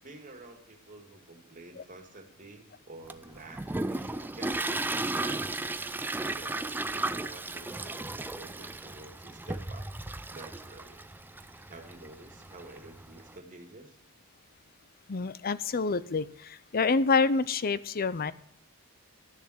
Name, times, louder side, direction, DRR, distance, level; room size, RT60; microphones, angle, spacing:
voice 1, 0.0-5.5 6.2-9.9 10.3-11.0 11.7-14.0, right 2 dB, 35° right, 5 dB, 2.2 m, -49 dB
Toilet flush, 3.1-13.3, right 2 dB, 10° right, 0.4 m, -35 dB
voice 2, 15.1-18.3, left 4 dB, 45° left, 17 dB, 0.6 m, -27 dB
12.5 x 7.1 x 7.8 m, 0.69 s
head